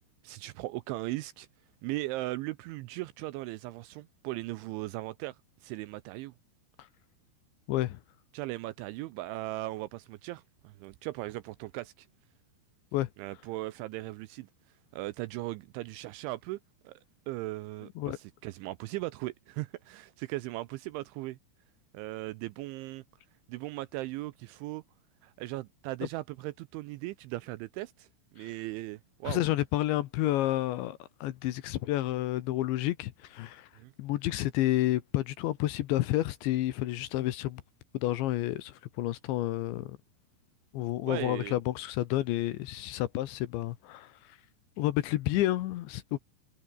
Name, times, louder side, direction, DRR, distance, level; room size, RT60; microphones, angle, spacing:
voice 1, 0.2-1.5 1.8-6.3 8.3-12.1 13.2-14.5 14.9-17.0 17.3-21.4 21.9-23.0 23.5-24.8 25.2-28.1 28.3-29.4 33.8-33.9 41.0-41.6, right 18 dB, 80° right, 2.8 m, -38 dB
voice 2, 7.7-8.0 12.9-13.1 18.0-18.2 29.3-33.7 34.0-37.6 37.9-40.0 40.7-44.4 44.8-46.2, left 15 dB, 75° left, 3.0 m, -30 dB
omnidirectional pair, 5.9 m